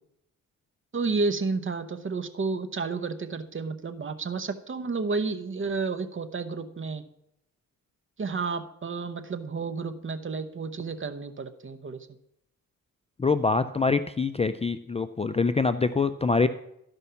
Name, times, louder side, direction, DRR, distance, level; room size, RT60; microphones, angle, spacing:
voice 1, 0.9-7.0 8.2-12.0, right 4 dB, 35° right, 9 dB, 0.8 m, -31 dB
voice 2, 13.2-16.5, left 4 dB, 20° left, 10 dB, 0.4 m, -25 dB
12.5 x 5.4 x 5.7 m, 0.79 s
cardioid pair, 85°, 35 cm